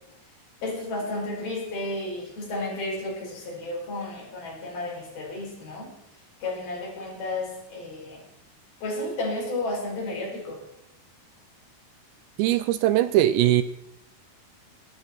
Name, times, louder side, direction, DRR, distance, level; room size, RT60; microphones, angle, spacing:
voice 1, 0.6-5.9 6.4-8.2 8.8-10.6, left 2 dB, 55° left, -2 dB, 6.5 m, -32 dB
voice 2, 12.4-13.6, right 13 dB, 80° right, 14 dB, 2.7 m, -20 dB
20.0 x 12.5 x 4.4 m, 0.90 s
omnidirectional pair, 5.3 m